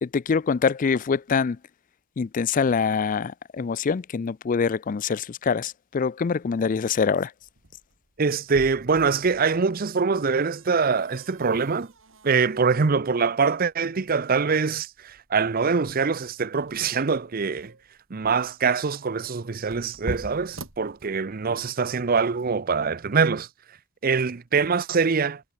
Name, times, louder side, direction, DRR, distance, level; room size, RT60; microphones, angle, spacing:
voice 1, 0.0-1.6 2.2-7.3, left 5 dB, 40° left, 0.4 m, -24 dB
sound 1, 7.4-21.6, right 1 dB, 70° right, 2.9 m, -45 dB
voice 2, 8.2-11.9 12.2-17.7 18.1-23.5 24.0-25.4, right 5 dB, 45° right, 0.6 m, -24 dB
head